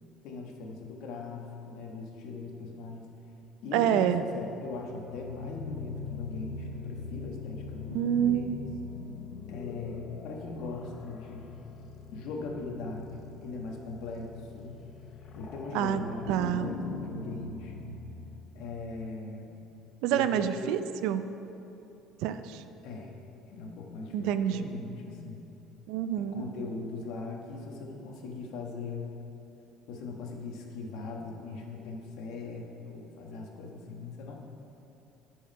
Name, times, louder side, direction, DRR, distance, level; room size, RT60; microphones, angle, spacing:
voice 1, 0.2-3.1 3.6-4.0 4.3-8.6 9.5-11.5 12.1-14.8 15.3-18.0 18.5-19.5 20.1-20.6 22.8-23.1 23.5-25.4 26.3-29.1 29.9-34.4, left 3 dB, 65° left, 1 dB, 1.2 m, -40 dB
voice 2, 3.7-4.2 7.9-8.6 15.7-16.7 20.0-21.2 22.2-22.6 24.1-24.7 25.9-26.4, right 10 dB, 75° right, 11 dB, 0.4 m, -28 dB
sound 1, 4.6-19.1, left 4 dB, 35° left, 0.6 m, -42 dB
10.5 x 4.8 x 5.3 m, 2.9 s
cardioid pair, 160°, 0 cm